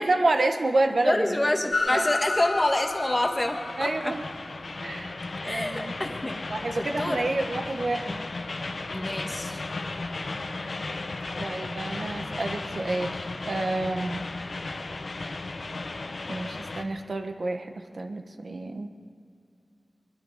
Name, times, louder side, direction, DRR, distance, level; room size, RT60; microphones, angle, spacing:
voice 1, 0.0-1.2 1.9-2.1 3.8-4.2 4.8-5.2 5.4-6.1 6.5-8.2 11.4-14.2 16.3-18.9, right 2 dB, 70° right, 6 dB, 1.2 m, -29 dB
voice 2, 1.0-4.1 5.4-6.4 7.0-7.2 8.9-9.6, left 1 dB, 25° left, 3 dB, 1.5 m, -27 dB
Train, 1.7-16.8, left 3 dB, 75° left, 0.9 m, -34 dB
22.0 x 12.5 x 4.9 m, 2.3 s
wide cardioid pair, 85°, 0 cm